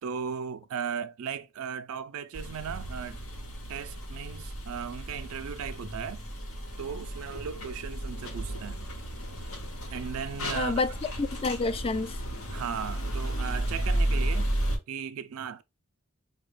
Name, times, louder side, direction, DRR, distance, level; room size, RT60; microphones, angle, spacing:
voice 1, 0.0-3.2 3.7-6.2 6.8-8.8 9.9-10.8 12.5-14.6 14.9-15.6, right 7 dB, 80° right, 0.4 m, -36 dB
sound 1, 2.3-14.8, right 1 dB, 80° left, 1.0 m, -33 dB
voice 2, 10.5-10.9 11.2-12.2, left 3 dB, 25° left, 0.3 m, -28 dB
4.7 x 2.2 x 3.1 m
head